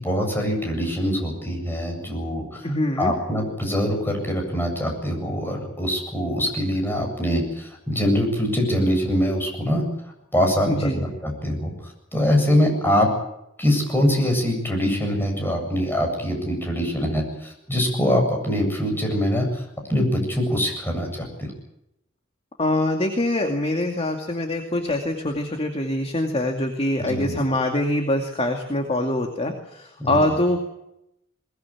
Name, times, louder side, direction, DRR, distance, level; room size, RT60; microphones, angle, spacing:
voice 1, 0.0-2.7 3.0-9.8 10.3-11.7 12.1-13.1 13.6-21.5 27.0-27.4 30.0-30.2, equal, 10° left, 2 dB, 7.9 m, -23 dB
voice 2, 2.6-3.1 10.7-11.0 22.6-30.6, left 1 dB, 30° left, 3 dB, 2.4 m, -24 dB
22.0 x 20.5 x 8.6 m, 0.83 s
head